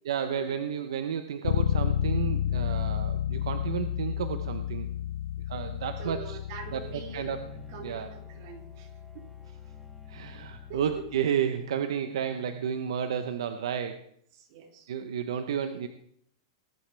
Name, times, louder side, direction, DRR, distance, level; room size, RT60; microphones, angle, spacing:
voice 1, 0.1-4.9 5.5-6.4 6.7-6.8 7.1-7.4 7.8-8.1 10.1-14.0 14.9-15.9, right 8 dB, 80° right, 8 dB, 0.9 m, -31 dB
Bass guitar, 1.4-11.2, left 10 dB, 75° left, 0.5 m, -32 dB
voice 2, 6.0-7.4 7.7-9.3 10.7-10.8 14.3-15.0, right 4 dB, 50° right, 2 dB, 3.1 m, -44 dB
Bowed string instrument, 6.6-13.3, right 2 dB, 5° left, 1.4 m, -54 dB
19.0 x 10.5 x 3.5 m, 0.68 s
supercardioid pair, 150°, 3 cm